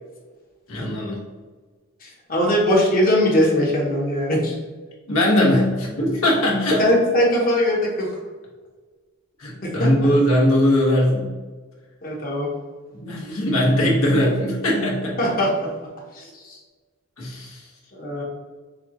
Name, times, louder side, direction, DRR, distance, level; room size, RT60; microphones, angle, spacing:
voice 1, 0.7-1.2 5.1-6.8 9.4-11.3 12.9-15.2 17.2-17.6, left 1 dB, 75° left, -3 dB, 1.3 m, -20 dB
voice 2, 2.0-4.5 6.8-8.1 9.6-9.9 12.0-12.5 15.2-15.7 16.1-16.6 17.9-18.2, left 1 dB, 40° left, -2 dB, 1.1 m, -20 dB
6.7 x 2.4 x 2.8 m, 1.4 s
head